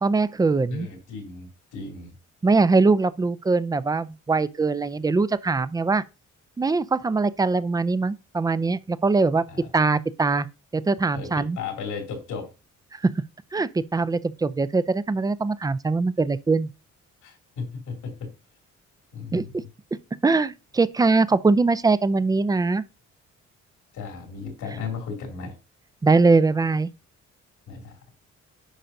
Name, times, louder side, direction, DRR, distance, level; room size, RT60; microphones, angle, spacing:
voice 1, 0.0-0.9 2.4-6.0 6.6-9.4 9.7-10.5 10.7-11.6 13.0-13.1 13.5-16.7 19.3-19.4 20.2-22.8 26.0-26.9, right 3 dB, 15° right, 0.4 m, -22 dB
voice 2, 0.7-2.1 9.5-9.7 11.1-12.5 17.2-18.3 19.1-19.6 23.9-25.5 27.7-27.9, left 5 dB, 90° left, 2.8 m, -35 dB
10.0 x 5.1 x 2.7 m
cardioid pair, 100°, 29 cm